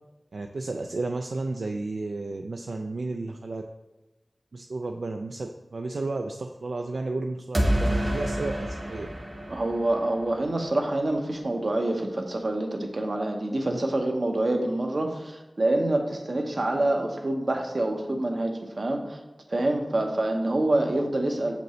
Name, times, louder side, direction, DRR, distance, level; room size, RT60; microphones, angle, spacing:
voice 1, 0.3-3.6 4.5-9.1 13.7-13.8, right 3 dB, 85° right, 3 dB, 0.3 m, -32 dB
sound 1, 7.5-10.4, equal, 35° right, 1.1 m, -28 dB
voice 2, 9.5-19.2 19.5-21.5, right 1 dB, 60° right, 3 dB, 0.8 m, -26 dB
6.6 x 5.2 x 3.1 m, 1.1 s
wide cardioid pair, 70°, 0 cm